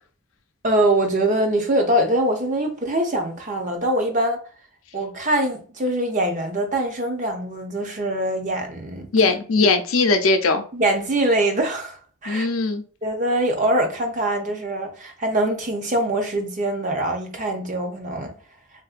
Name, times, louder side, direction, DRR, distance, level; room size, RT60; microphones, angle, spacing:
voice 1, 0.6-4.4 4.9-9.3 10.7-12.0 12.2-12.5 13.0-18.3, right 1 dB, 35° right, 0.6 m, -23 dB
voice 2, 9.1-10.6 12.3-12.8, left 3 dB, 85° left, 0.5 m, -19 dB
3.6 x 2.5 x 2.4 m
head